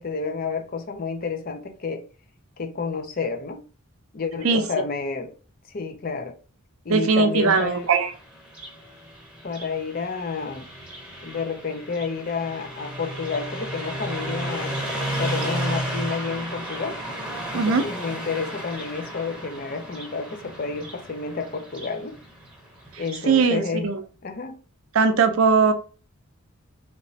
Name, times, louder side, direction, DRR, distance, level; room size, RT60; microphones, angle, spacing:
voice 1, 0.0-2.0 2.6-3.6 4.1-5.3 5.7-6.4 6.8-7.9 9.4-10.7 11.2-14.8 15.1-17.0 17.5-22.2 23.0-23.9 24.2-24.6, left 5 dB, 40° left, 0.5 m, -30 dB
voice 2, 6.9-8.1 17.5-17.9 22.9-24.0 24.9-25.7, right 5 dB, 70° right, 0.5 m, -20 dB
Car passing by, 7.3-23.3, right 1 dB, 5° right, 0.8 m, -34 dB
3.3 x 3.0 x 2.7 m
head